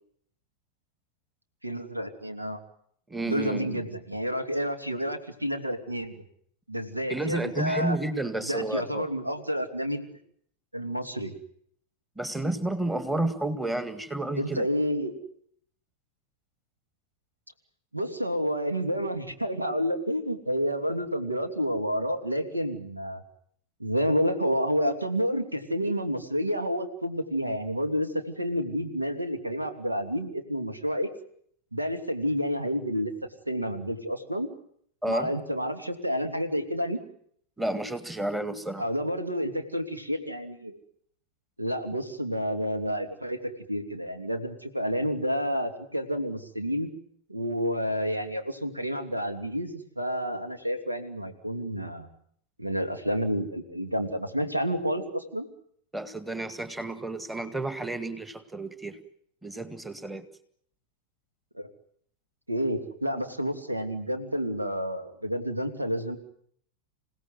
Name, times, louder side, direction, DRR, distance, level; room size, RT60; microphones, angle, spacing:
voice 1, 1.6-2.6 3.2-6.2 6.7-8.0 8.4-10.2 10.7-11.3 14.4-15.2 17.9-23.2 23.8-31.1 31.7-33.1 33.5-34.5 35.1-37.0 38.8-40.8 41.6-46.9 47.3-52.1 52.6-55.5 61.5-61.7 62.5-66.2, equal, 85° right, 8 dB, 2.8 m, -29 dB
voice 2, 3.1-3.8 7.1-9.1 12.2-14.7 35.0-35.3 37.6-38.8 55.9-59.0 59.4-60.3, right 2 dB, 5° right, 12 dB, 2.0 m, -31 dB
27.5 x 17.5 x 9.4 m, 0.66 s
figure-of-eight pair, 90°, 0 cm